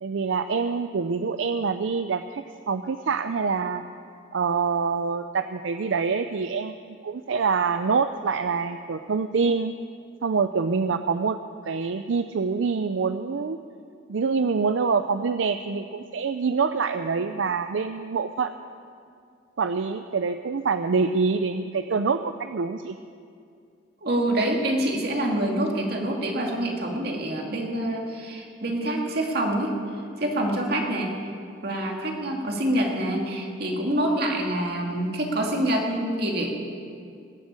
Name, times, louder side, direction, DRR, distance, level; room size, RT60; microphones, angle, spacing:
voice 1, 0.0-3.8 4.3-9.7 10.2-11.4 11.7-13.6 14.1-18.5 19.6-23.0, right 5 dB, 80° right, 9 dB, 0.5 m, -26 dB
voice 2, 24.0-29.8 30.2-31.2 31.6-36.5, right 1 dB, 55° right, 0 dB, 2.4 m, -26 dB
20.5 x 7.5 x 8.8 m, 2.3 s
head